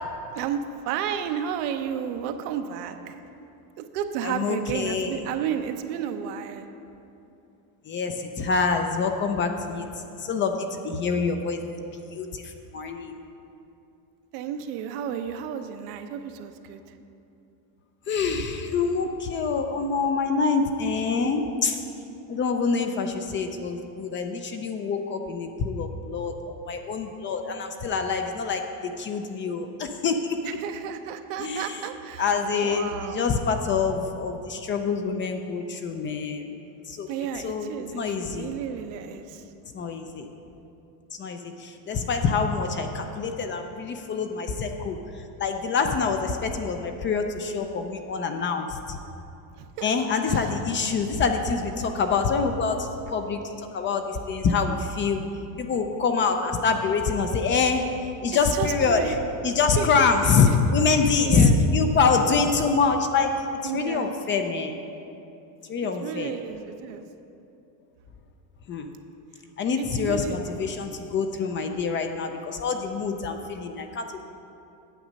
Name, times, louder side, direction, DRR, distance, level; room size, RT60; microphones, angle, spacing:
voice 1, 0.3-3.2 3.8-6.7 14.3-16.8 30.4-32.3 32.6-33.3 37.1-39.4 49.8-50.5 58.5-59.2 59.8-60.6 61.2-61.6 63.6-64.1 66.0-67.0 69.8-70.4, right 8 dB, 75° right, 7 dB, 0.8 m, -32 dB
voice 2, 4.2-5.3 7.9-9.9 10.2-13.2 18.1-21.8 22.3-30.4 31.4-31.8 32.2-36.6 36.9-37.1 37.4-38.6 39.7-40.3 41.2-45.0 45.4-49.0 49.8-55.2 55.6-59.2 59.4-64.7 65.7-66.3 68.7-68.9 69.6-74.2, left 5 dB, 25° left, 6 dB, 0.4 m, -26 dB
9.1 x 7.2 x 5.3 m, 2.8 s
supercardioid pair, 130°, 46 cm